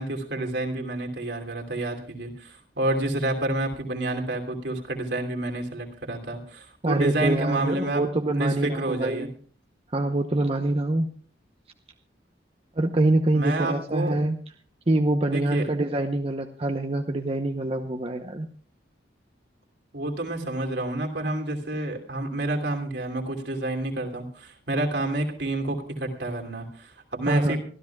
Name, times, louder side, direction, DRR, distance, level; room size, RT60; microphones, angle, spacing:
voice 1, 0.0-8.0 8.3-9.3 13.3-14.2 15.3-15.6 19.9-27.6, right 1 dB, 70° right, 2 dB, 2.9 m, -29 dB
voice 2, 6.8-9.3 9.9-11.1 12.8-14.4 14.9-18.5 27.3-27.6, right 2 dB, 30° right, 5 dB, 0.8 m, -25 dB
25.0 x 13.5 x 2.3 m, 0.44 s
head